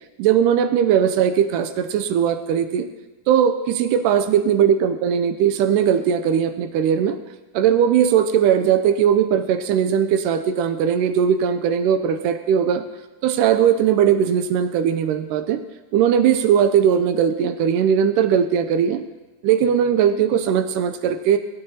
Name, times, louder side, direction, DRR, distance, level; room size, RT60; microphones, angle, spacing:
voice 1, 0.2-2.9 3.3-7.2 7.5-12.8 13.2-15.6 15.9-19.0 19.4-21.4, right 8 dB, 90° right, 9 dB, 2.2 m, -19 dB
19.5 x 9.5 x 2.8 m, 1.2 s
omnidirectional pair, 3.6 m